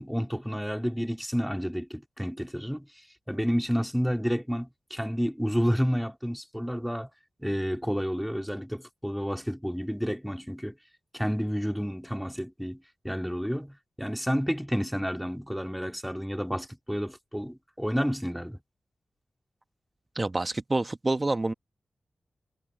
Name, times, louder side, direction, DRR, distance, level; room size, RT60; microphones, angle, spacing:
voice 1, 0.0-2.9 3.3-7.1 7.4-10.7 11.1-18.6, equal, ahead, 2.6 m, -30 dB
voice 2, 20.1-21.5, right 2 dB, 30° right, 1.1 m, -27 dB
cardioid pair, 65°, 0 cm